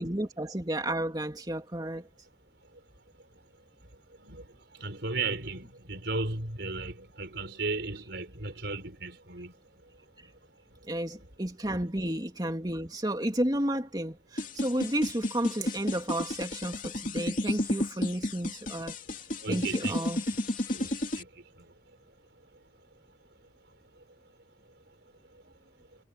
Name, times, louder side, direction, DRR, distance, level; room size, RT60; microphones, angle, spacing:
voice 1, 0.0-2.1 10.9-19.0 19.5-20.2, right 1 dB, 20° right, 2.9 m, -32 dB
voice 2, 4.8-9.5 11.7-11.8 19.4-20.0 20.7-21.3, right 3 dB, 70° right, 4.3 m, -35 dB
sound 1, 14.4-21.2, left 1 dB, 45° left, 2.9 m, -32 dB
head